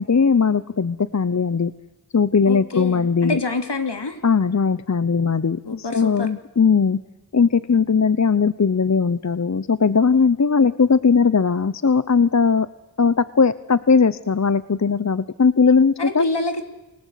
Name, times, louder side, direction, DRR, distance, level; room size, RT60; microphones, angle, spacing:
voice 1, 0.0-1.7 2.1-3.4 4.2-5.6 5.9-7.0 7.3-12.7 13.0-16.2, left 5 dB, 40° left, 16 dB, 0.8 m, -18 dB
voice 2, 2.5-4.2 5.6-6.3 16.0-16.6, left 3 dB, 75° left, 7 dB, 3.0 m, -26 dB
29.0 x 18.5 x 8.3 m, 1.0 s
wide cardioid pair, 55°, 42 cm